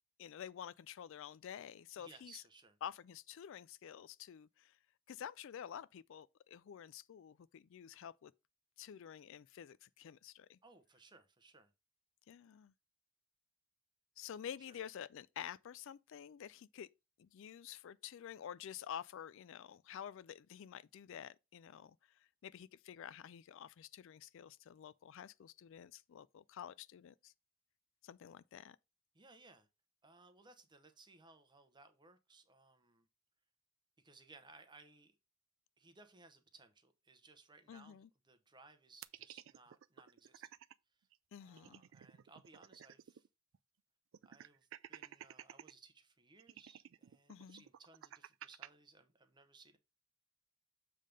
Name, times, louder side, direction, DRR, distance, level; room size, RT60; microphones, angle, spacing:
voice 1, 0.2-2.4 2.8-4.8 5.1-8.3 8.8-10.6 12.3-12.7 14.2-16.9 17.2-22.0 22.4-27.3 28.0-28.8 37.7-38.1 41.3-41.8 47.3-47.6, left 9 dB, 65° left, 0.3 m, -50 dB
voice 2, 2.0-2.8 10.6-11.7 14.6-14.8 29.1-29.7 30.0-33.1 34.0-35.2 35.8-40.5 41.4-43.3 44.2-49.8, right 3 dB, 20° right, 0.9 m, -62 dB
sound 1, 39.0-40.7 41.1-41.2 41.5-43.3 43.5-43.6 44.1-45.7 46.4-48.7, right 10 dB, 65° right, 0.4 m, -53 dB
7.4 x 3.4 x 5.2 m
head